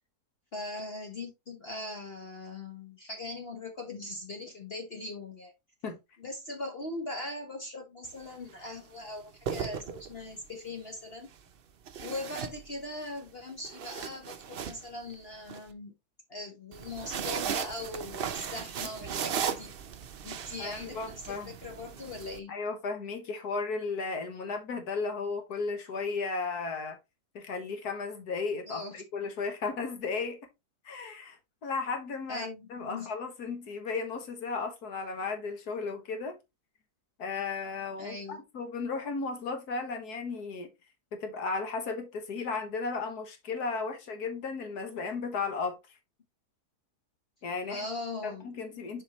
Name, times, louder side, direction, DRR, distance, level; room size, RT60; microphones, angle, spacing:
voice 1, 0.5-5.5 6.2-11.3 12.0-15.9 16.3-19.7 20.2-22.6 28.7-29.0 32.3-33.1 38.0-38.4 47.7-48.5, left 2 dB, 40° left, 1.2 m, -40 dB
sound 1, 8.0-8.3 9.2-10.4 11.9-13.1 13.5-15.6 16.7-22.4, right 8 dB, 60° right, 0.6 m, -37 dB
voice 2, 20.6-21.5 22.5-27.0 27.4-30.4 30.9-36.4 37.2-40.7 41.1-45.8 47.4-47.9 48.2-49.0, left 4 dB, 70° left, 1.9 m, -35 dB
7.4 x 4.9 x 2.9 m
omnidirectional pair, 1.7 m